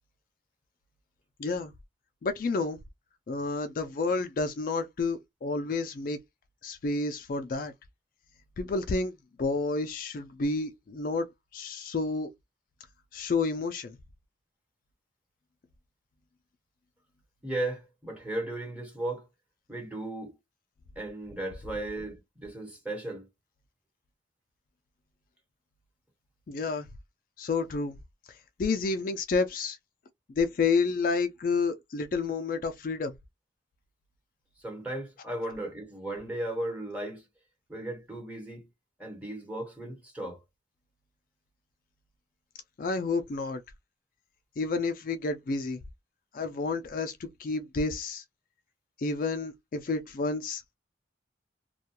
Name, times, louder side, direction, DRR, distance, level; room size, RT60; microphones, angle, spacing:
voice 1, 1.4-1.7 2.2-2.8 3.3-6.2 6.6-7.7 8.6-11.3 11.5-12.3 13.1-14.0 26.5-26.9 27.4-28.0 28.3-29.8 30.4-33.1 42.8-43.6 44.6-45.8 46.3-48.2 49.0-50.6, left 4 dB, 45° left, 0.3 m, -30 dB
voice 2, 17.4-19.2 19.7-20.3 20.9-23.2 34.6-37.2 37.7-38.7 39.0-40.4, right 1 dB, 5° right, 1.1 m, -36 dB
2.3 x 2.2 x 2.9 m
head